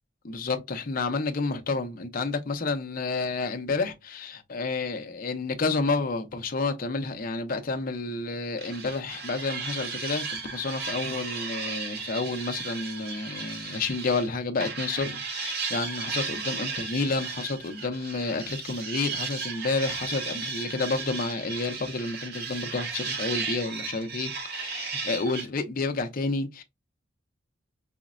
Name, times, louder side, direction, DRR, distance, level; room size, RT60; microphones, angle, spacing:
voice 1, 0.2-26.6, left 3 dB, 45° left, 0.5 m, -30 dB
sound 1, 8.6-14.3 14.6-25.5, right 5 dB, 55° right, 0.7 m, -35 dB
4.9 x 2.0 x 2.4 m
head